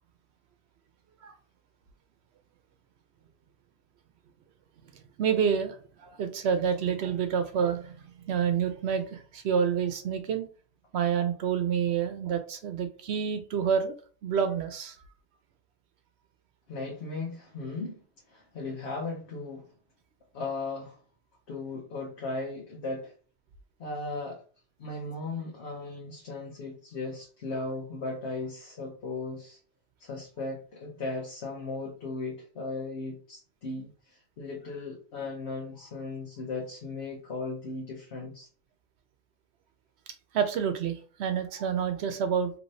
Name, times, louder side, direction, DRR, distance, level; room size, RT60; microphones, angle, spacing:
voice 1, 5.2-7.9 8.3-10.5 10.9-14.0 14.2-15.0 40.3-42.5, right 7 dB, 85° right, 0.9 m, -28 dB
voice 2, 16.7-19.7 20.3-21.0 21.5-23.1 23.8-24.4 24.8-29.6 30.0-38.5, left 3 dB, 90° left, 1.1 m, -37 dB
3.0 x 2.7 x 3.1 m
omnidirectional pair, 1.1 m